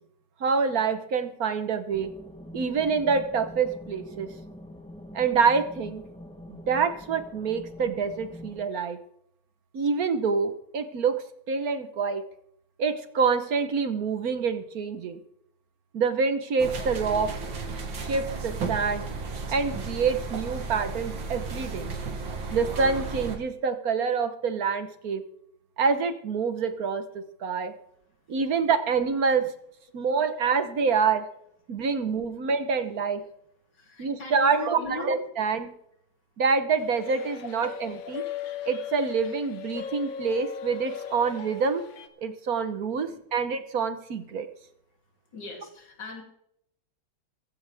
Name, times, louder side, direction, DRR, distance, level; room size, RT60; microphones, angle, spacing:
voice 1, 0.4-2.1 2.5-4.3 5.1-6.0 6.7-9.0 9.7-12.2 12.8-15.2 15.9-17.4 18.0-19.0 19.5-21.9 22.5-25.2 25.8-27.7 28.3-29.5 29.9-31.2 31.7-33.2 34.0-34.8 35.0-35.7 36.4-38.2 38.6-41.8 42.2-44.5, right 5 dB, 55° right, 10 dB, 1.3 m, -26 dB
sound 1, 1.9-8.6, left 1 dB, 5° left, 0.5 m, -44 dB
sound 2, 16.6-23.4, right 4 dB, 70° right, 2.4 m, -34 dB
voice 2, 33.7-35.2 41.1-41.2 42.9-43.2 44.2-44.3 45.3-46.2, left 3 dB, 60° left, 1 dB, 3.5 m, -40 dB
sound 3, 36.8-42.1, left 9 dB, 75° left, 1.8 m, -38 dB
15.5 x 15.0 x 3.5 m, 0.75 s
omnidirectional pair, 2.2 m